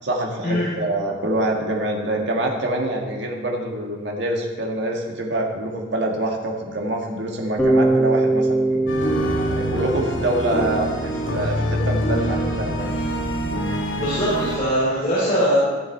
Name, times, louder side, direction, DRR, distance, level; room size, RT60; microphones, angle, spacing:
voice 1, 0.0-8.8 9.5-13.0, right 1 dB, 60° right, 0 dB, 1.8 m, -25 dB
Bass guitar, 7.6-11.6, right 2 dB, 5° left, 2.0 m, -22 dB
sound 1, 8.9-14.6, equal, 80° left, 2.3 m, -25 dB
voice 2, 14.0-15.6, equal, 40° left, -9 dB, 3.3 m, -21 dB
15.0 x 7.2 x 4.4 m, 1.3 s
head